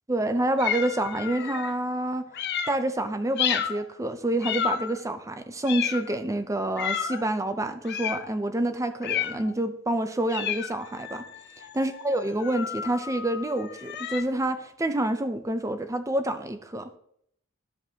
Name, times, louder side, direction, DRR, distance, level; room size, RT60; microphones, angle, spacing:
voice 1, 0.1-2.3 2.7-11.3 11.7-16.9, right 1 dB, 15° right, 9 dB, 0.6 m, -28 dB
sound 1, 0.6-1.7 2.3-2.8 3.4-3.8 4.4-5.1 5.7-6.2 6.8-7.2 7.8-8.3 9.0-9.5 10.3-14.2, left 8 dB, 55° left, 0.6 m, -31 dB
12.5 x 5.3 x 2.9 m, 0.69 s
head